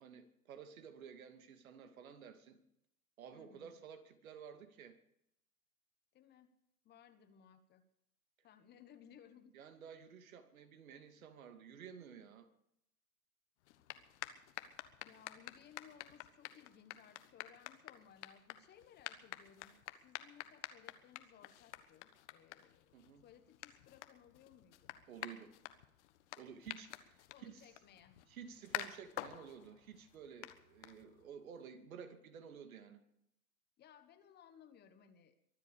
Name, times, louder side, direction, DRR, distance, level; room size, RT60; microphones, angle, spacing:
voice 1, 0.0-2.6 3.2-5.0 9.5-12.5 22.9-23.2 25.1-25.5 26.4-27.6 28.3-33.0, right 7 dB, 65° right, 7 dB, 2.6 m, -53 dB
voice 2, 3.3-3.8 6.1-6.5 6.8-7.8 8.4-9.6 14.0-14.1 15.0-25.0 27.3-28.2 33.8-35.3, left 8 dB, 20° left, 10 dB, 1.3 m, -62 dB
sound 1, 13.6-31.4, left 14 dB, 50° left, 1.4 m, -50 dB
23.5 x 8.0 x 7.1 m, 0.76 s
hypercardioid pair, 130°, 45 cm